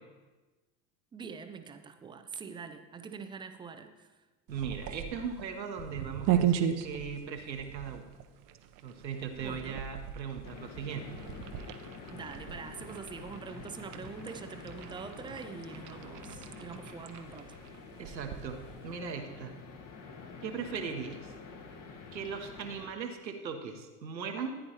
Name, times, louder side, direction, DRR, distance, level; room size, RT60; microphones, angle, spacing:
voice 1, 1.1-4.1 9.3-9.8 12.1-17.4, right 6 dB, 10° right, 8 dB, 0.3 m, -44 dB
sound 1, 4.5-19.0, right 10 dB, 40° right, 0.7 m, -37 dB
voice 2, 4.5-8.1 8.8-11.1 18.0-19.5 20.4-21.3 22.1-24.5, right 6 dB, 85° right, 4 dB, 1.2 m, -38 dB
sound 2, 10.4-22.9, left 4 dB, 40° left, 1.5 m, -47 dB
14.5 x 9.8 x 2.9 m, 1.2 s
figure-of-eight pair, 75°, 50 cm